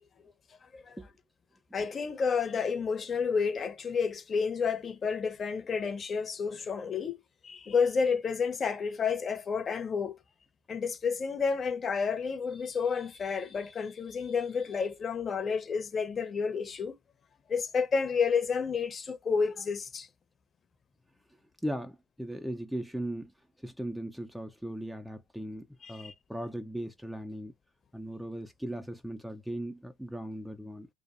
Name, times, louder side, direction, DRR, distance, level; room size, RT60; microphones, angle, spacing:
voice 1, 1.7-10.2 10.7-16.9 17.5-20.1 25.8-26.1, left 5 dB, 35° left, 0.7 m, -30 dB
voice 2, 21.6-23.3 23.6-27.5 27.9-30.9, right 1 dB, ahead, 0.4 m, -38 dB
2.5 x 2.0 x 2.5 m
hypercardioid pair, 75°, 0 cm